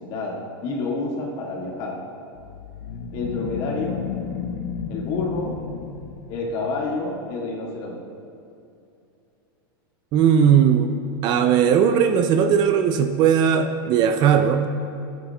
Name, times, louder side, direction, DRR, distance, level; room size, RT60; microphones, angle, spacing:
voice 1, 0.0-2.0 3.1-4.0 4.9-5.5 6.3-8.0, left 3 dB, 40° left, -3 dB, 2.0 m, -28 dB
sound 1, 2.3-6.7, left 6 dB, 60° left, 0.8 m, -33 dB
voice 2, 10.1-11.0 11.2-14.7, right 8 dB, 35° right, 8 dB, 0.4 m, -18 dB
14.0 x 9.2 x 2.4 m, 2.7 s
supercardioid pair, 145°, 12 cm